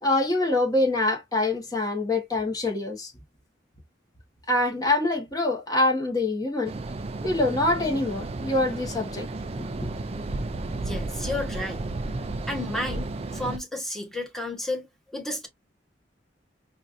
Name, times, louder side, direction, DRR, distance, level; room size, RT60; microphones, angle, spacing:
voice 1, 0.0-3.1 4.5-6.7 7.2-9.3 9.8-9.9, left 2 dB, 20° left, 1.3 m, -25 dB
sound 1, 6.6-13.6, right 2 dB, 35° right, 0.4 m, -33 dB
voice 2, 10.8-11.9 12.5-14.9 15.1-15.5, left 1 dB, ahead, 1.2 m, -32 dB
4.4 x 2.5 x 2.6 m
head